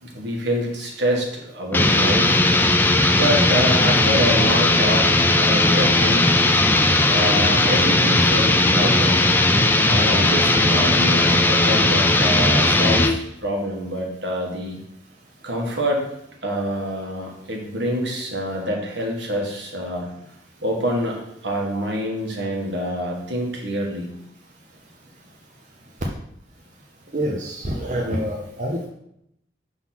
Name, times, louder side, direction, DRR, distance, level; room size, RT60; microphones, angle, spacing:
voice 1, 0.0-2.4 3.1-6.4 7.1-9.2 9.9-14.8 15.4-16.0 16.4-20.1 20.6-24.1, equal, 75° right, 0 dB, 1.6 m, -26 dB
sound 1, 1.7-13.2, left 2 dB, 10° left, 0.4 m, -17 dB
voice 2, 27.1-28.9, equal, 40° right, -1 dB, 0.7 m, -26 dB
6.0 x 3.9 x 5.7 m, 0.77 s
head